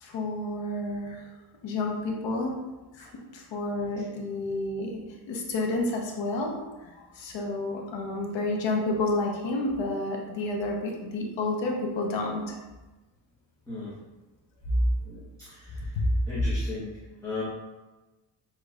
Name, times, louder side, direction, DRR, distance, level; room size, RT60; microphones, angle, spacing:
voice 1, 0.0-1.2 1.6-2.5 3.0-3.1 3.3-5.0 5.3-6.5 6.8-12.5 15.9-16.0, left 2 dB, 80° left, 0 dB, 0.9 m, -30 dB
voice 2, 15.0-16.0 16.3-16.9 17.2-17.4, left 3 dB, 5° left, -11 dB, 1.1 m, -37 dB
6.5 x 3.0 x 2.4 m, 1.1 s
wide cardioid pair, 135°, 44 cm